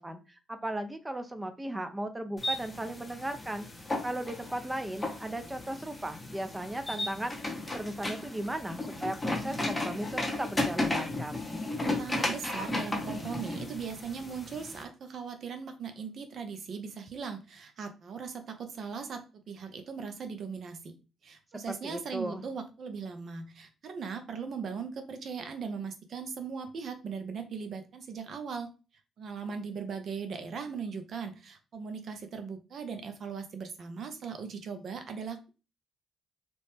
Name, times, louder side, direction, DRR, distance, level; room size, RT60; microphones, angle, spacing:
voice 1, 0.0-3.7 4.0-11.4 21.7-22.5, right 1 dB, 15° right, 8 dB, 0.5 m, -36 dB
sound 1, 2.4-14.8, left 2 dB, 15° left, 0.7 m, -35 dB
voice 2, 11.8-21.0 21.2-28.7 29.2-35.5, right 5 dB, 60° right, 7 dB, 0.6 m, -39 dB
2.9 x 2.1 x 3.2 m, 0.31 s
cardioid pair, 90°, 0 cm